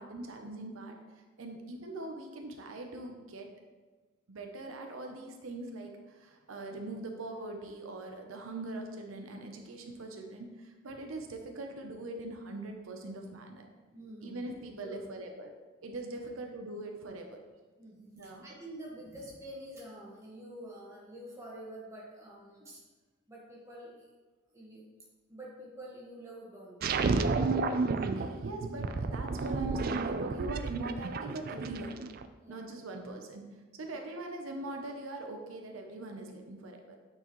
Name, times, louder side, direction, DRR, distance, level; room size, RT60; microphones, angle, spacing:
voice 1, 0.0-3.5 4.3-13.7 14.2-15.5 15.8-17.4 18.1-18.4 28.2-31.9 32.5-33.5 33.7-37.0, right 2 dB, 80° right, 3 dB, 0.7 m, -42 dB
voice 2, 13.9-14.6 14.8-15.1 17.8-22.8 23.3-24.1 24.5-24.8 25.3-27.3 32.4-32.7 33.9-34.0, right 1 dB, 15° right, -5 dB, 1.5 m, -48 dB
sound 1, 26.8-32.2, right 4 dB, 45° right, 0.3 m, -31 dB
8.7 x 4.7 x 3.1 m, 1.3 s
head